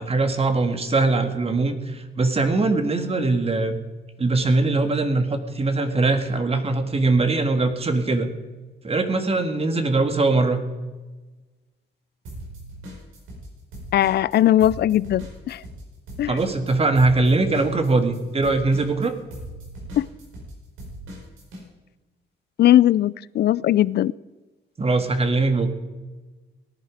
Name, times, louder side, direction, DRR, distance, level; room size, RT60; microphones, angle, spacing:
voice 1, 0.0-3.8 4.2-8.3 8.8-10.6 16.3-19.1 24.8-25.7, right 3 dB, 30° right, 8 dB, 1.8 m, -21 dB
sound 1, 12.2-13.5 13.7-21.6, right 1 dB, 85° right, 5.1 m, -39 dB
voice 2, 13.9-15.6 16.2-16.4 20.0-20.1 22.6-24.1, left 12 dB, 55° left, 21 dB, 0.4 m, -19 dB
18.0 x 11.0 x 5.0 m, 1.2 s
cardioid pair, 90°, 20 cm